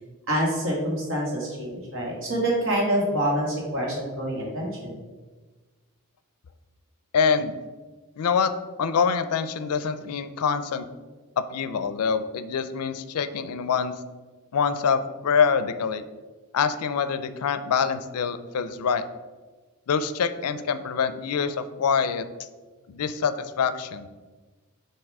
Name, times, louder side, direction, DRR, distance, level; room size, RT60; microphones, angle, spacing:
voice 1, 0.3-5.0, right 1 dB, 60° right, -2 dB, 1.8 m, -26 dB
voice 2, 7.1-7.5 8.2-10.9 11.4-13.9 14.5-16.0 16.5-19.0 19.9-22.3 22.9-24.1, left 6 dB, 80° left, 12 dB, 0.4 m, -25 dB
7.2 x 2.9 x 4.7 m, 1.3 s
head